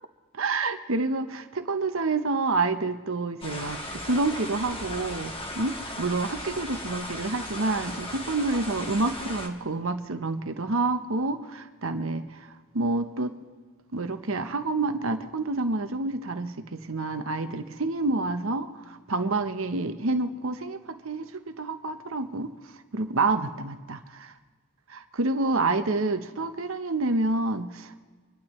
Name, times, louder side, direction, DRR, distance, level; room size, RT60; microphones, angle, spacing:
voice 1, 0.3-12.5 12.7-13.3 13.9-22.5 22.9-24.3 24.9-28.0, right 3 dB, 70° right, 8 dB, 1.0 m, -28 dB
sound 1, 3.4-9.5, left 1 dB, 25° left, 1.6 m, -37 dB
26.0 x 12.0 x 3.2 m, 1.4 s
head